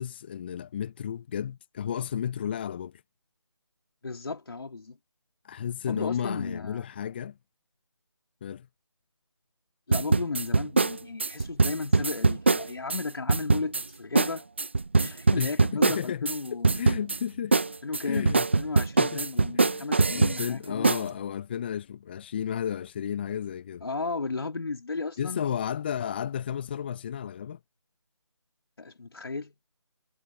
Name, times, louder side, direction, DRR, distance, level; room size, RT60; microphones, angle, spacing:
voice 1, 0.0-3.0 5.4-7.4 8.4-8.7 15.4-15.5 15.8-17.6 18.0-18.5 19.0-19.3 19.5-23.8 25.2-27.6, left 9 dB, 20° left, 1.1 m, -33 dB
voice 2, 4.0-5.0 5.9-6.9 9.9-14.4 15.0-16.8 17.8-20.9 23.8-25.4 28.8-29.5, left 3 dB, 55° left, 3.6 m, -34 dB
sound 1, 9.9-13.0 13.3-13.8 14.2-14.3 14.6-16.4 16.6-17.2 17.5-20.5 20.8-21.0, right 3 dB, 25° right, 0.4 m, -23 dB
figure-of-eight pair, 160°, 15 cm